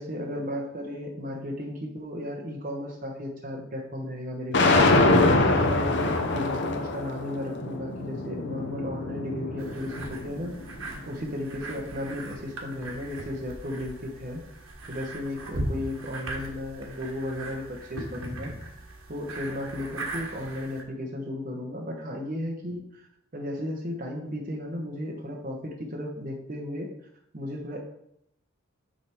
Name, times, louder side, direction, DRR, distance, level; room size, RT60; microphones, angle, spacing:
voice 1, 0.0-10.6 11.1-14.4 14.9-18.5 19.1-23.1 23.3-26.9 27.3-27.8, left 1 dB, 40° right, 0 dB, 0.9 m, -34 dB
sound 1, 4.5-10.7, left 2 dB, 55° left, 0.8 m, -24 dB
sound 2, 9.6-20.8, right 2 dB, 80° right, 1.4 m, -39 dB
8.9 x 3.4 x 4.4 m, 0.76 s
head